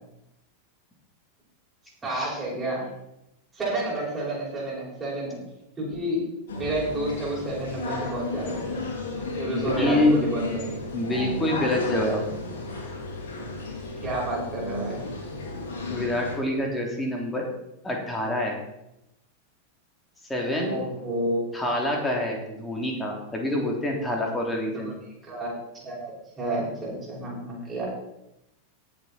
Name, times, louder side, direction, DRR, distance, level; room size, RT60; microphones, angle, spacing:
voice 1, 2.0-2.9 3.5-5.4 5.8-6.2 6.6-8.9 9.3-10.4 14.0-15.0 20.5-21.7 24.8-24.9 25.2-25.6 25.8-27.9, right 1 dB, 15° right, -6 dB, 5.8 m, -30 dB
sound 1, 6.5-16.3, left 2 dB, 60° left, 3.2 m, -33 dB
voice 2, 9.5-10.2 10.9-12.3 15.9-17.5 17.8-18.6 20.3-20.8 21.5-24.9, left 1 dB, 10° left, 0 dB, 3.1 m, -26 dB
17.5 x 7.6 x 4.3 m, 0.86 s
figure-of-eight pair, 90°, 0 cm